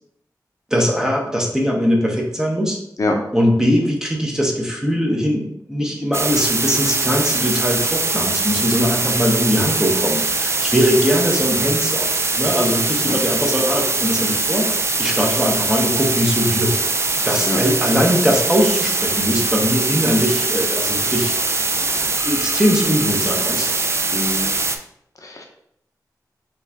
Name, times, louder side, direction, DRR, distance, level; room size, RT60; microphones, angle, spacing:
voice 1, 0.7-2.8 3.3-12.1 12.4-16.8 17.2-21.3 21.8-21.9 22.2-23.7, equal, 10° right, -1 dB, 1.0 m, -20 dB
sound 1, 6.1-24.8, right 3 dB, 40° right, 0.4 m, -22 dB
voice 2, 24.1-24.5 25.2-25.4, left 2 dB, 50° left, 2 dB, 0.7 m, -23 dB
5.5 x 2.5 x 3.4 m, 0.72 s
wide cardioid pair, 100°, 7 cm